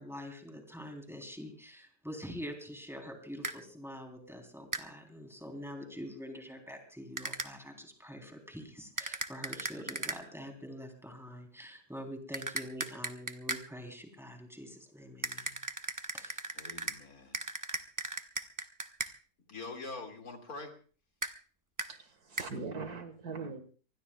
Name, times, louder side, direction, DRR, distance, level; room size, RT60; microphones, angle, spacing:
voice 1, 0.0-15.6 16.1-16.4, equal, ahead, 3 dB, 3.4 m, -45 dB
sound 1, 3.4-3.6 4.7-4.9 7.2-7.5 9.0-10.2 12.3-13.6 15.2-17.0 17.3-19.1 21.2-21.3 21.8-21.9 22.4-22.5, right 2 dB, 25° right, 0.4 m, -37 dB
voice 2, 16.5-17.4 19.5-20.7, left 3 dB, 60° left, 3 dB, 2.8 m, -44 dB
voice 3, 21.9-23.6, right 4 dB, 65° right, 9 dB, 2.1 m, -41 dB
26.0 x 20.0 x 2.3 m, 0.39 s
omnidirectional pair, 1.7 m